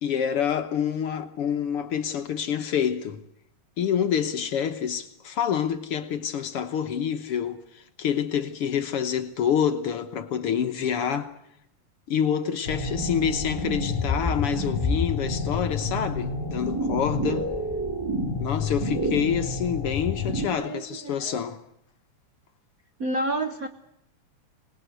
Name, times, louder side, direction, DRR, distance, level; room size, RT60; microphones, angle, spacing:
voice 1, 0.0-3.2 3.8-11.3 12.1-17.5 18.4-21.6, left 8 dB, 60° left, 1.7 m, -27 dB
sound 1, 12.7-20.5, left 2 dB, 5° right, 2.7 m, -28 dB
voice 2, 20.6-21.4 23.0-23.7, right 1 dB, 65° right, 0.8 m, -30 dB
25.5 x 19.5 x 8.1 m
omnidirectional pair, 3.4 m